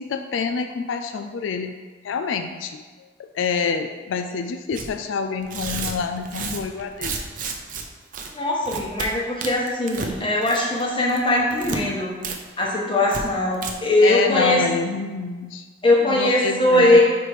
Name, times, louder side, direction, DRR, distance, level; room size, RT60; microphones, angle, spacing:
voice 1, 0.0-1.8 2.0-2.8 3.2-7.2 14.0-15.6 16.0-17.0, left 5 dB, 90° left, 7 dB, 0.4 m, -27 dB
Tearing, 4.7-4.9 5.4-7.8 8.1-8.3 8.6-9.1 9.4-10.1 10.4-10.8 11.1-11.8 12.2-12.4 12.6-12.7 13.1-13.2 13.5-13.7, right 4 dB, 45° right, 0.6 m, -31 dB
voice 2, 8.3-12.1 12.6-14.6 15.8-17.0, left 1 dB, 25° left, -3 dB, 1.1 m, -20 dB
4.9 x 4.5 x 4.8 m, 1.4 s
head